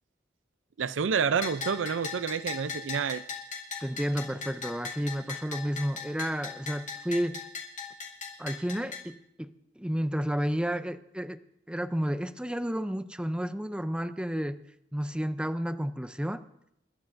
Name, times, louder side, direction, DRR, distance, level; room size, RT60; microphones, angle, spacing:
voice 1, 0.8-3.2, right 6 dB, 85° right, 0.5 m, -28 dB
Bell, 1.4-9.0, left 5 dB, 40° left, 2.2 m, -39 dB
voice 2, 3.8-7.5 8.4-11.4 11.7-14.6 14.9-16.4, equal, 5° right, 0.5 m, -31 dB
29.5 x 13.0 x 2.6 m
head